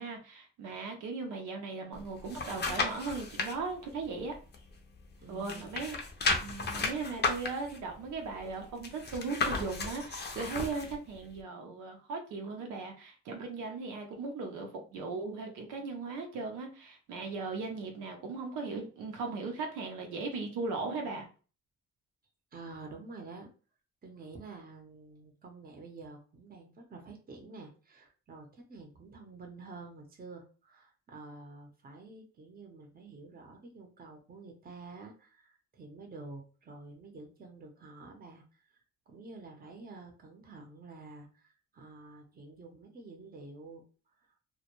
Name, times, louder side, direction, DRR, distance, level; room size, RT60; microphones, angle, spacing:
voice 1, 0.0-4.3 5.3-6.0 6.4-21.3, right 4 dB, 85° right, 0.6 m, -38 dB
sound 1, 1.9-3.5 4.0-5.1 5.4-10.9 11.4-11.5, left 3 dB, 35° left, 0.5 m, -34 dB
voice 2, 5.2-5.9 22.5-23.5 24.0-38.8 39.1-43.8, right 3 dB, 30° right, 0.7 m, -49 dB
2.2 x 2.2 x 2.9 m
cardioid pair, 90°, 30 cm